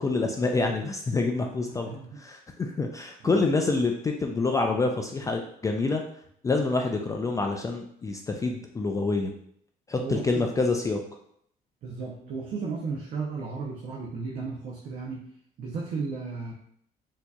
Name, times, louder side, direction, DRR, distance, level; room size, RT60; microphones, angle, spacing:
voice 1, 0.0-6.0 6.4-9.3 9.9-11.0, left 3 dB, 20° left, 2 dB, 0.3 m, -27 dB
voice 2, 1.7-2.2 3.2-3.4 10.0-10.5 11.8-15.3 15.6-16.5, right 4 dB, 55° right, -2 dB, 0.7 m, -34 dB
4.3 x 2.8 x 2.3 m, 0.68 s
cardioid pair, 110°, 17 cm